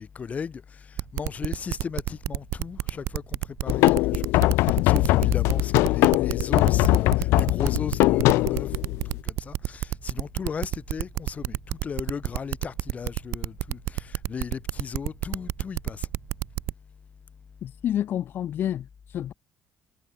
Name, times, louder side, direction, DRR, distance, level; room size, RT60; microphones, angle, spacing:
voice 1, 0.0-16.1, left 6 dB, 35° left, 7.9 m, -36 dB
sound 1, 1.0-16.7, right 17 dB, 80° right, 1.0 m, -29 dB
sound 2, 3.7-9.2, left 20 dB, 85° left, 0.4 m, -21 dB
voice 2, 17.6-19.3, left 11 dB, 55° left, 1.4 m, -29 dB
cardioid pair, 120°, 4 cm